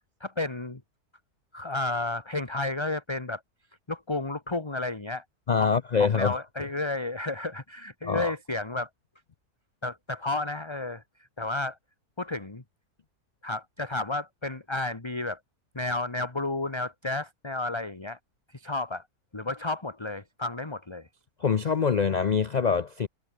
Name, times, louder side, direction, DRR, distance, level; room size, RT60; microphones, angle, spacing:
voice 1, 0.2-0.8 1.5-3.4 3.9-5.2 5.6-5.7 6.0-8.9 9.8-11.0 11.4-11.8 12.2-12.6 13.4-15.4 15.7-18.2 18.5-19.1 19.3-21.1, left 2 dB, 15° left, 1.7 m, -32 dB
voice 2, 5.5-6.4 8.0-8.3 21.4-23.1, left 6 dB, 70° left, 0.4 m, -24 dB
omnidirectional pair, 1.6 m